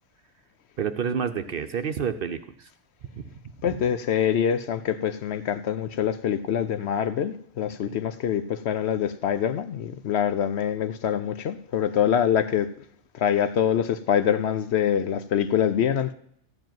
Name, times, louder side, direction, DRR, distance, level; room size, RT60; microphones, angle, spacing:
voice 1, 0.8-2.7 3.1-3.5 7.8-7.9, right 7 dB, 55° right, 0.7 m, -30 dB
voice 2, 3.6-12.7 13.1-16.1, left 9 dB, 65° left, 0.8 m, -25 dB
14.0 x 5.0 x 9.2 m
omnidirectional pair, 1.3 m